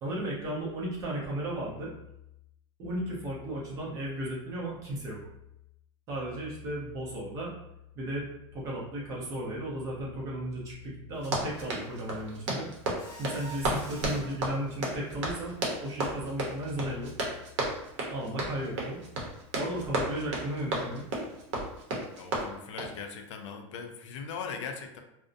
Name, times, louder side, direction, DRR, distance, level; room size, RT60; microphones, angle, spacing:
voice 1, 0.0-1.9 2.8-5.2 6.1-7.5 7.9-8.3 8.5-12.7 13.2-17.1 18.1-19.0 19.5-21.0, right 1 dB, 20° right, -5 dB, 0.6 m, -35 dB
Run, 11.1-23.0, right 2 dB, 80° right, 0.7 m, -33 dB
Mechanisms, 13.0-14.4, right 1 dB, 20° left, 0.6 m, -47 dB
voice 2, 22.2-25.0, left 6 dB, 90° left, 5 dB, 0.4 m, -39 dB
2.5 x 2.0 x 2.4 m, 0.82 s
supercardioid pair, 180°, 15 cm